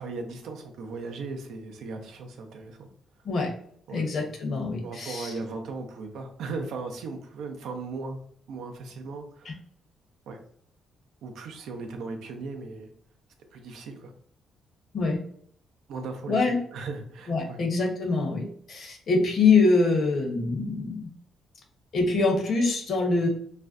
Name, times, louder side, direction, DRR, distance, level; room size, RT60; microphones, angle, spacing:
voice 1, 0.0-2.9 3.9-4.0 4.8-8.2 8.5-9.5 10.3-10.4 11.2-12.9 13.5-14.1 15.9-17.6, right 3 dB, 80° right, 4 dB, 0.4 m, -37 dB
voice 2, 3.9-5.3 14.9-15.2 16.3-16.6 17.3-21.1 21.9-23.3, left 3 dB, 55° left, 2 dB, 0.7 m, -24 dB
2.4 x 2.1 x 2.4 m, 0.63 s
cardioid pair, 90°, 0 cm